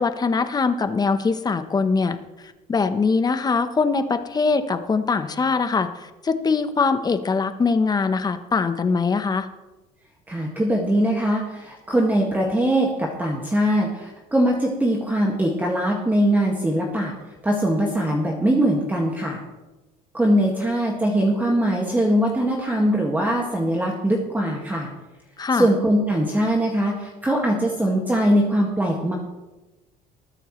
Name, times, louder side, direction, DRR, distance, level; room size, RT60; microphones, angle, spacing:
voice 1, 0.0-2.2 2.7-9.5 25.4-25.7, left 4 dB, 25° left, 10 dB, 1.0 m, -22 dB
voice 2, 10.3-17.1 17.4-19.4 20.1-24.9 25.5-29.1, right 1 dB, 10° right, -1 dB, 1.9 m, -21 dB
20.5 x 9.2 x 3.2 m, 1.1 s
cardioid pair, 110°, 16 cm